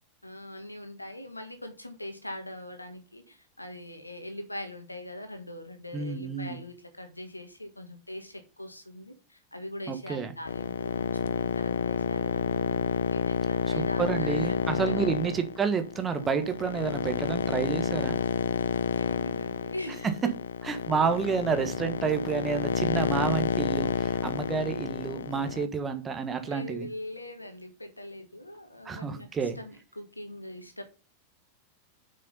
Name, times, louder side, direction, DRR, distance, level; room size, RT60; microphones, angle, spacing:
voice 1, 0.2-15.1 18.9-20.3 26.3-30.8, left 1 dB, 85° left, 1.6 m, -42 dB
voice 2, 5.9-6.6 9.9-10.3 13.7-18.2 20.6-26.9 28.8-29.6, right 6 dB, 20° right, 1.3 m, -30 dB
sound 1, 10.4-25.6, left 7 dB, 65° left, 0.5 m, -29 dB
7.1 x 5.7 x 5.4 m
figure-of-eight pair, 90°, 0 cm